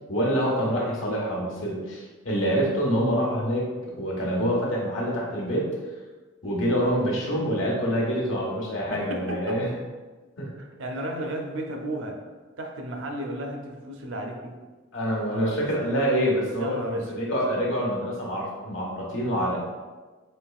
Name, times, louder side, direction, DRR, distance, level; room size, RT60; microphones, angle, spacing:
voice 1, 0.1-5.7 6.4-9.7 10.4-10.5 14.9-19.6, equal, 80° left, -3 dB, 1.1 m, -26 dB
voice 2, 8.8-9.6 10.6-12.2 12.6-14.6 15.3-15.9 16.6-17.3, right 1 dB, 80° right, 3 dB, 0.6 m, -34 dB
4.4 x 3.0 x 2.4 m, 1.3 s
head